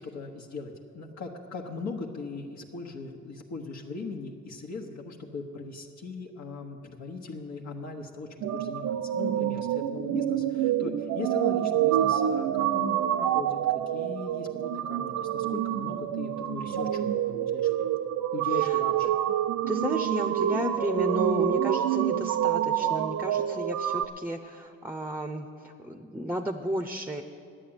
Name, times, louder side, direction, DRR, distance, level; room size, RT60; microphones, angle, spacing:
voice 1, 0.0-13.6 13.9-18.0 18.3-19.1, left 3 dB, 65° left, 0 dB, 1.3 m, -39 dB
sound 1, 8.4-24.0, right 11 dB, 75° right, 0.6 m, -27 dB
voice 2, 19.7-27.2, equal, 5° right, 7 dB, 0.6 m, -33 dB
10.5 x 8.9 x 8.9 m, 2.6 s
cardioid pair, 90°, 30 cm